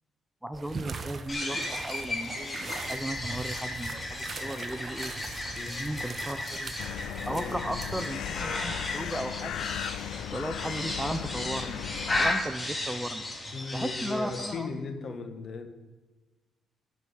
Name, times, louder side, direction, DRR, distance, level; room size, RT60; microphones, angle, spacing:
voice 1, 0.4-2.6 2.9-5.1 5.7-6.7 7.3-9.7 10.3-11.8 12.1-13.2 13.7-14.9, right 1 dB, 5° right, 10 dB, 0.6 m, -36 dB
sound 1, 0.5-8.1, right 4 dB, 40° right, 1.0 m, -41 dB
sound 2, 1.3-14.5, left 2 dB, 20° left, 2.3 m, -35 dB
sound 3, 6.8-12.3, left 11 dB, 80° left, 0.3 m, -37 dB
voice 2, 7.3-7.7 13.5-15.7, left 4 dB, 55° left, 6 dB, 1.4 m, -37 dB
12.0 x 5.0 x 8.0 m, 1.2 s
cardioid pair, 90°, 0 cm